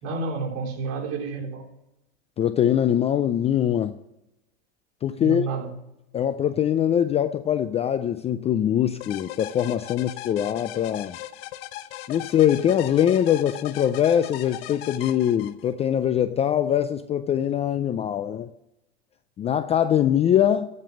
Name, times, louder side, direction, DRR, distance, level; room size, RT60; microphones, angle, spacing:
voice 1, 0.0-1.6 5.2-5.7, right 4 dB, 50° right, 0 dB, 3.6 m, -30 dB
voice 2, 2.4-4.0 5.0-5.5 6.1-11.2 12.1-18.5 19.4-20.7, left 10 dB, 20° left, 11 dB, 0.3 m, -22 dB
sound 1, 9.0-15.9, left 15 dB, 65° left, 0.8 m, -38 dB
14.5 x 5.3 x 7.5 m, 0.90 s
supercardioid pair, 125°, 33 cm